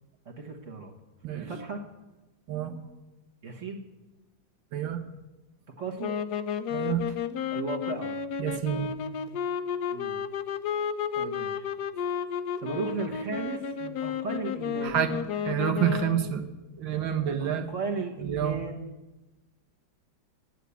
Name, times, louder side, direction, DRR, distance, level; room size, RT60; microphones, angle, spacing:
voice 1, 0.2-0.9 1.3-1.8 3.4-3.8 5.8-6.2 7.5-8.2 9.9-10.2 11.2-11.6 12.6-15.1 17.4-18.9, right 4 dB, 40° right, 1 dB, 1.6 m, -35 dB
voice 2, 1.2-1.6 2.5-2.7 4.7-5.0 6.7-7.0 8.4-8.9 14.8-15.2 15.5-16.4 16.8-17.7 18.2-18.6, right 10 dB, 75° right, 7 dB, 1.7 m, -28 dB
sound 1, 6.0-16.4, left 7 dB, 70° left, 1.0 m, -32 dB
10.0 x 9.4 x 8.2 m, 1.1 s
omnidirectional pair, 2.1 m